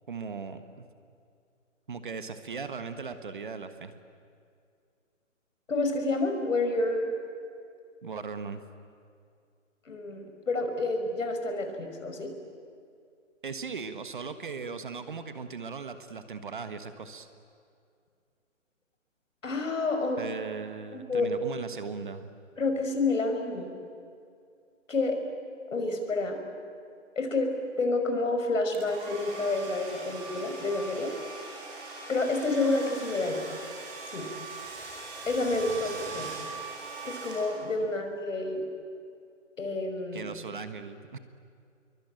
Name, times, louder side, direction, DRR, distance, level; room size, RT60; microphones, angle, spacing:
voice 1, 0.1-0.9 1.9-3.9 8.0-8.6 13.4-17.3 20.2-22.3 35.7-36.4 40.1-41.2, right 5 dB, 40° right, 10 dB, 1.5 m, -38 dB
voice 2, 5.7-7.1 9.9-12.3 19.4-20.2 20.9-21.3 22.6-23.7 24.9-25.2 25.7-26.5 27.2-27.5 27.8-31.1 32.1-33.4 34.1-34.3 35.3-36.3 37.0-38.6 39.6-40.3, left 2 dB, 75° left, 5 dB, 5.4 m, -29 dB
Domestic sounds home sounds, 28.7-37.9, right 3 dB, 15° right, 3.2 m, -41 dB
26.5 x 23.0 x 9.1 m, 2.4 s
hypercardioid pair, 175°, 39 cm